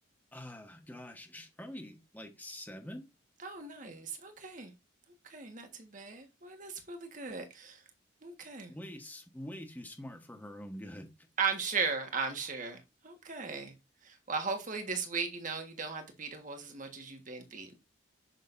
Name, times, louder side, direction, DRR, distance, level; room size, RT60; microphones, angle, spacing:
voice 1, 0.3-3.1 8.7-11.3, left 1 dB, 10° left, 1.2 m, -45 dB
voice 2, 3.4-4.7 5.2-7.8 8.2-8.7 11.4-13.7 14.0-17.8, right 5 dB, 40° right, 1.6 m, -37 dB
8.0 x 6.4 x 2.6 m
head